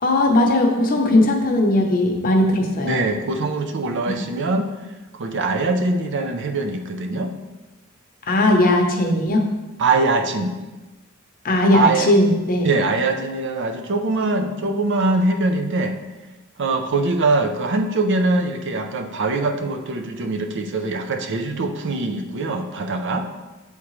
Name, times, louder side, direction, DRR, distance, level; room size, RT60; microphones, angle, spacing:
voice 1, 0.0-3.0 8.3-9.4 11.4-12.7, left 1 dB, 45° left, 2 dB, 0.8 m, -18 dB
voice 2, 2.6-4.7 5.1-7.3 9.8-10.6 11.7-12.1 12.6-16.0 16.6-23.2, right 3 dB, 60° right, 5 dB, 0.6 m, -22 dB
8.3 x 3.6 x 3.1 m, 1.1 s
head